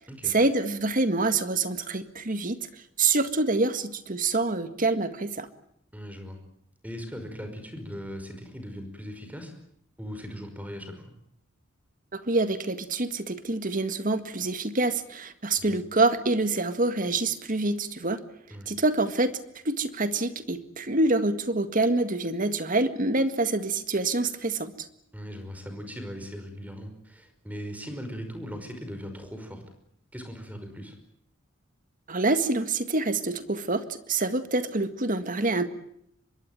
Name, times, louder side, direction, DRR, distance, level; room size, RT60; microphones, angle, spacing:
voice 1, 0.3-2.7 3.0-5.5 12.1-18.2 18.7-19.3 19.7-24.9 32.1-35.7, right 2 dB, 40° right, 10 dB, 1.9 m, -26 dB
voice 2, 5.9-6.4 6.8-9.5 10.0-11.1 15.6-15.8 18.5-18.7 25.1-29.6 30.1-31.0, equal, 10° right, 7 dB, 5.3 m, -39 dB
25.5 x 22.0 x 9.1 m, 0.71 s
head